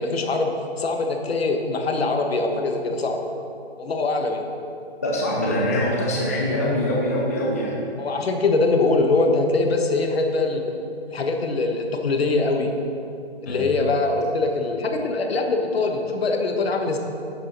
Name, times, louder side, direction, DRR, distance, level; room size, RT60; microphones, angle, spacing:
voice 1, 0.0-3.2 3.8-4.4 8.0-10.6 11.1-12.7 13.4-17.0, left 3 dB, 65° left, 3 dB, 1.4 m, -23 dB
voice 2, 5.0-7.8 13.5-13.6, left 1 dB, 15° left, -3 dB, 0.4 m, -23 dB
11.0 x 7.3 x 4.1 m, 2.6 s
hypercardioid pair, 160°, 33 cm